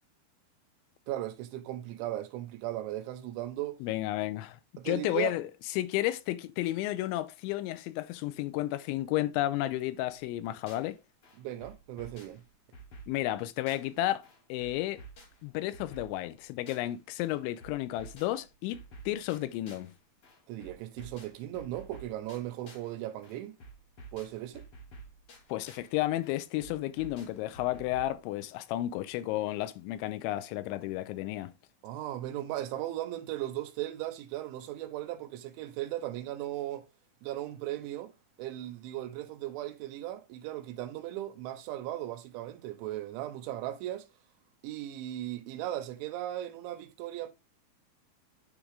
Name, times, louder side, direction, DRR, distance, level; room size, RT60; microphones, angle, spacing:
voice 1, 1.1-3.8 4.8-5.3 11.4-12.4 20.5-23.6 24.1-24.6 31.8-36.8 37.2-38.1 38.4-44.1 44.6-47.3, right 14 dB, 85° right, 3.1 m, -37 dB
voice 2, 3.8-4.6 4.9-11.0 13.1-15.0 15.4-18.8 19.1-19.9 25.5-31.5, left 15 dB, 85° left, 2.8 m, -32 dB
sound 1, 10.1-10.9 11.2-14.0 14.2-17.0 17.2-19.9 20.2-22.9 23.2-25.9 26.2-28.2, right 2 dB, 65° left, 1.3 m, -51 dB
9.8 x 3.6 x 3.3 m
omnidirectional pair, 5.4 m